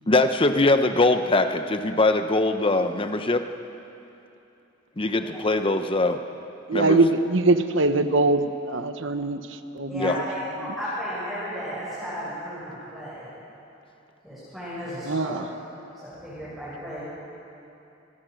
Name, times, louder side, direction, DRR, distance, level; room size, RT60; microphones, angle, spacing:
voice 1, 0.1-3.4 5.0-6.2 6.7-7.0 10.0-10.2, left 2 dB, 25° left, 8 dB, 0.9 m, -22 dB
voice 2, 6.7-9.4 9.7-10.3 15.0-15.5, right 2 dB, 70° right, 9 dB, 1.1 m, -22 dB
voice 3, 9.9-13.3 14.2-15.4 16.0-17.0, equal, ahead, -10 dB, 7.0 m, -34 dB
27.0 x 21.0 x 6.5 m, 2.8 s
head